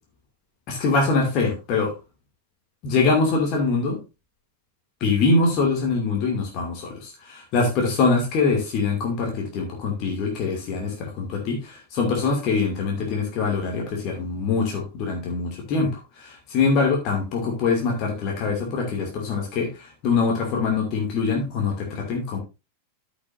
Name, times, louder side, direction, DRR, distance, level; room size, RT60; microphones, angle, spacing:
voice 1, 0.7-1.9 2.8-4.0 5.0-22.4, left 4 dB, 40° left, 0 dB, 2.3 m, -24 dB
13.0 x 6.1 x 2.6 m, 0.27 s
figure-of-eight pair, 90°, 0 cm